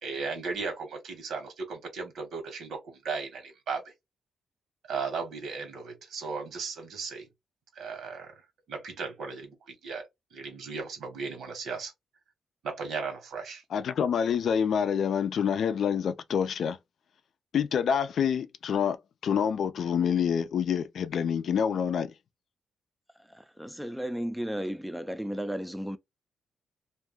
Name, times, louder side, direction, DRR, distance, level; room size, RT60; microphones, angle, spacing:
voice 1, 0.0-3.9 4.9-7.2 7.7-8.3 8.7-10.0 10.3-11.9 12.6-13.6, right 5 dB, 80° right, 1.3 m, -36 dB
voice 2, 13.7-16.8 17.5-19.0 19.2-22.1, left 7 dB, 65° left, 0.4 m, -27 dB
voice 3, 23.6-26.0, equal, ahead, 0.4 m, -33 dB
2.6 x 2.3 x 3.5 m
cardioid pair, 110°, 0 cm